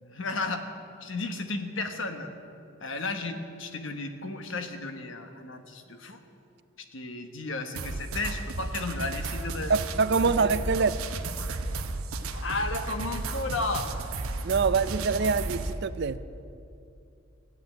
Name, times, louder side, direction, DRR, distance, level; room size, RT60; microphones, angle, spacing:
voice 1, 0.0-0.7 1.0-2.3 2.8-6.2 6.9-9.7 10.4-10.5 12.3-13.9, left 3 dB, 65° left, 6 dB, 1.3 m, -33 dB
sound 1, 7.7-15.7, right 3 dB, 90° right, 0.9 m, -33 dB
voice 2, 9.7-11.0 14.4-16.2, right 5 dB, 55° right, 14 dB, 0.4 m, -25 dB
14.5 x 9.5 x 9.0 m, 2.6 s
head